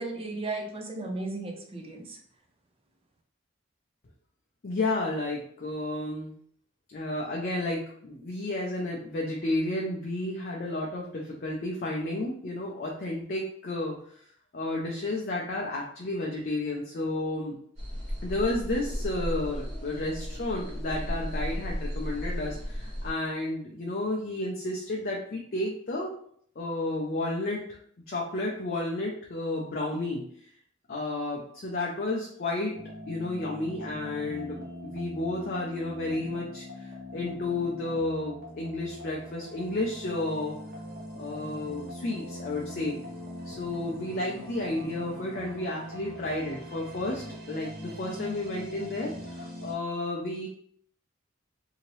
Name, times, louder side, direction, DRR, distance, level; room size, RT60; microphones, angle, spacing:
voice 1, 0.0-2.2, right 2 dB, 25° right, 3 dB, 0.4 m, -35 dB
voice 2, 4.6-6.3 6.9-14.0 14.5-17.6 18.2-26.1 26.6-27.8 28.1-30.2 30.9-32.7 33.1-40.6 41.1-43.0 43.4-50.5, left 2 dB, 45° left, -2 dB, 0.5 m, -32 dB
sound 1, 17.8-23.1, equal, 65° right, 1.4 m, -34 dB
sound 2, 32.7-49.7, equal, 50° right, 0.8 m, -42 dB
2.8 x 2.8 x 3.0 m, 0.62 s
head